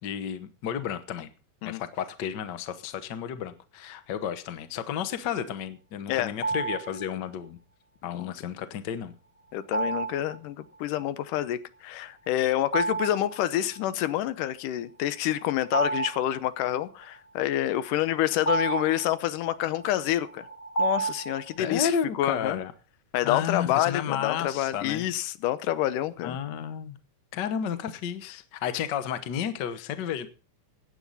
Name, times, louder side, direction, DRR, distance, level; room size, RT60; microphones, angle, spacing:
voice 1, 0.0-1.3 1.6-7.6 8.0-9.1 21.6-22.7 23.2-25.0 26.2-27.0 27.3-30.3, left 8 dB, 70° left, 11 dB, 1.0 m, -32 dB
sound 1, 6.4-7.1 9.7-10.4 12.6-13.4 13.7-13.8 15.3-16.8 17.7-21.7, right 3 dB, 35° left, 1.4 m, -31 dB
voice 2, 9.5-20.5 20.8-22.6 23.1-26.4, left 13 dB, 85° left, 14 dB, 2.4 m, -28 dB
16.0 x 10.0 x 4.1 m, 0.38 s
omnidirectional pair, 3.6 m